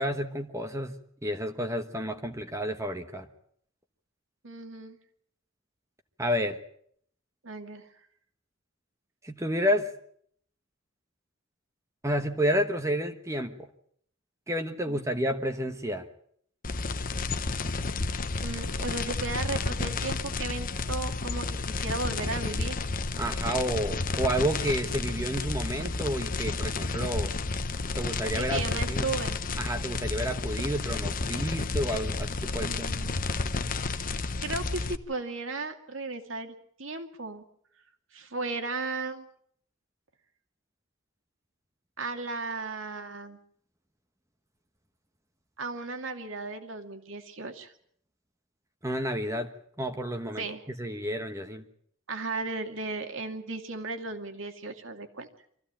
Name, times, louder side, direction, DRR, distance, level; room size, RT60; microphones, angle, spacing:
voice 1, 0.0-3.3 6.2-6.6 9.2-9.9 12.0-13.6 14.5-16.1 23.2-27.3 27.9-28.6 28.9-29.1 29.6-32.9 48.8-49.5 49.8-50.4 50.8-51.6, equal, 15° right, 6 dB, 1.2 m, -30 dB
voice 2, 4.4-5.0 7.4-7.9 14.9-15.0 18.4-22.8 28.3-29.4 32.5-33.2 33.9-34.1 34.4-37.4 38.1-39.2 42.0-43.4 45.6-47.7 50.4-50.6 52.1-55.3, right 3 dB, 70° right, 6 dB, 2.4 m, -35 dB
sound 1, 16.6-35.0, left 3 dB, 45° left, 0.9 m, -31 dB
24.5 x 15.5 x 8.8 m, 0.66 s
head